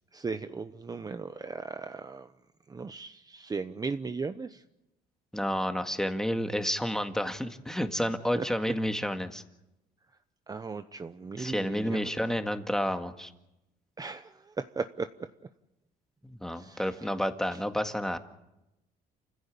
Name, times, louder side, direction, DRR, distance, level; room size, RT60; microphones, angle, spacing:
voice 1, 0.1-2.3 2.7-4.6 8.3-8.4 10.5-12.1 14.0-15.1 16.5-16.8, right 4 dB, 20° right, 10 dB, 0.9 m, -37 dB
voice 2, 5.3-9.4 11.4-13.3 16.2-18.2, equal, 5° left, 7 dB, 1.9 m, -30 dB
29.0 x 15.5 x 8.5 m, 0.93 s
cardioid pair, 110°, 17 cm